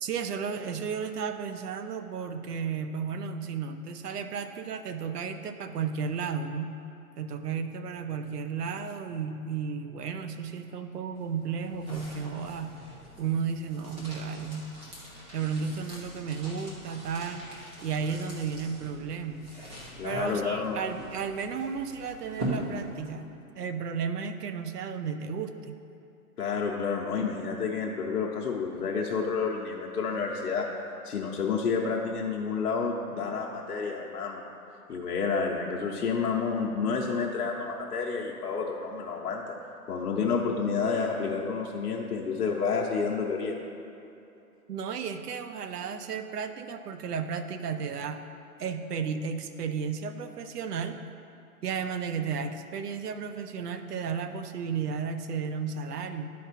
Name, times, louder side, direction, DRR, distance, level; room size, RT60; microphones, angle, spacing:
voice 1, 0.0-6.8 7.2-12.8 13.2-14.7 15.3-17.5 17.8-19.5 20.0-23.2 23.6-25.8 44.7-48.2 48.6-51.0 51.6-56.3, right 6 dB, 80° right, 8 dB, 0.8 m, -33 dB
sound 1, 11.2-23.3, right 1 dB, 10° right, 0.7 m, -42 dB
voice 2, 20.0-20.8 26.4-30.7 31.0-34.4 34.9-39.5 39.9-43.6, left 5 dB, 75° left, -2 dB, 1.0 m, -30 dB
11.0 x 4.3 x 4.2 m, 2.8 s
hypercardioid pair, 155°, 46 cm